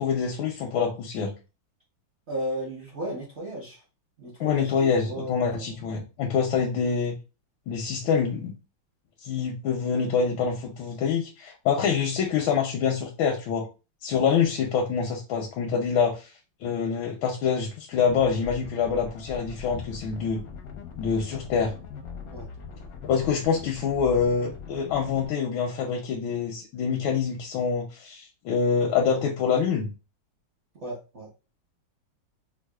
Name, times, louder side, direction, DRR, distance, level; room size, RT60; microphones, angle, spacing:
voice 1, 0.0-1.3 4.4-7.2 7.7-8.5 9.2-13.7 14.0-16.3 16.6-20.4 21.0-21.7 23.0-29.9, left 6 dB, 85° left, 0 dB, 1.4 m, -26 dB
voice 2, 2.3-3.8 4.2-5.8 22.3-22.5 30.7-31.3, right 1 dB, 45° right, -4 dB, 0.9 m, -35 dB
sound 1, 17.9-25.3, left 6 dB, 65° left, 0.9 m, -41 dB
4.7 x 2.3 x 2.3 m, 0.30 s
omnidirectional pair, 2.1 m